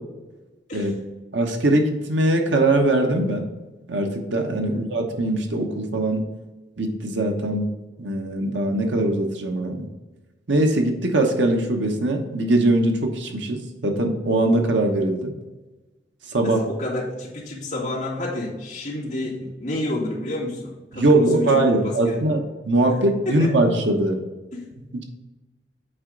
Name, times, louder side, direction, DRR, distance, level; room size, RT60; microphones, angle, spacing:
voice 1, 1.3-3.5 3.9-6.2 6.8-7.7 8.0-9.9 10.5-15.3 16.3-16.6 20.9-24.2, right 2 dB, 85° right, 3 dB, 1.1 m, -21 dB
voice 2, 16.4-22.2 23.3-23.5 24.5-24.7, left 1 dB, 40° left, -5 dB, 2.3 m, -29 dB
7.9 x 4.9 x 3.9 m, 1.1 s
head